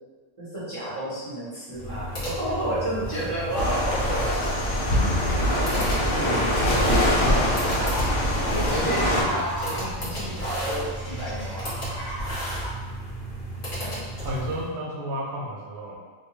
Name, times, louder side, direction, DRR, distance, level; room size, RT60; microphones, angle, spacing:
voice 1, 0.4-4.5 5.1-5.8 6.6-7.4 8.5-11.7 13.8-13.9, right 1 dB, 30° right, -12 dB, 0.8 m, -31 dB
sound 1, 1.7-14.7, equal, 45° left, 1.1 m, -34 dB
sound 2, 3.6-9.2, equal, 75° left, 0.9 m, -23 dB
sound 3, 5.7-12.7, equal, 5° left, 0.9 m, -36 dB
voice 2, 14.2-16.0, right 1 dB, 65° right, -3 dB, 0.8 m, -32 dB
2.5 x 2.2 x 2.9 m, 1.4 s
omnidirectional pair, 1.3 m